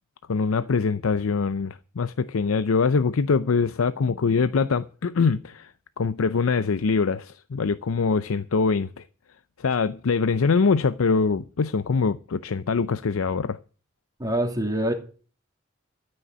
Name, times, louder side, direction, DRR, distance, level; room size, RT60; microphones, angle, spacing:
voice 1, 0.3-5.7 6.0-9.0 9.6-13.6, left 4 dB, 90° left, 0.5 m, -23 dB
voice 2, 14.2-14.9, right 1 dB, 20° right, 2.7 m, -25 dB
13.5 x 6.4 x 9.5 m
head